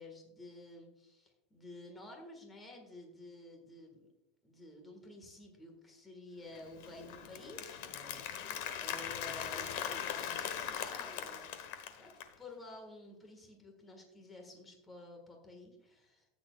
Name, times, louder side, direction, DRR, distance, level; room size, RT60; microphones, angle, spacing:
voice 1, 0.0-4.1 4.4-11.5 12.0-16.3, left 2 dB, 15° left, 3 dB, 1.7 m, -52 dB
Applause, 6.5-12.3, left 9 dB, 65° left, 1.1 m, -40 dB
13.5 x 8.8 x 2.4 m, 0.88 s
supercardioid pair, 160°, 0 cm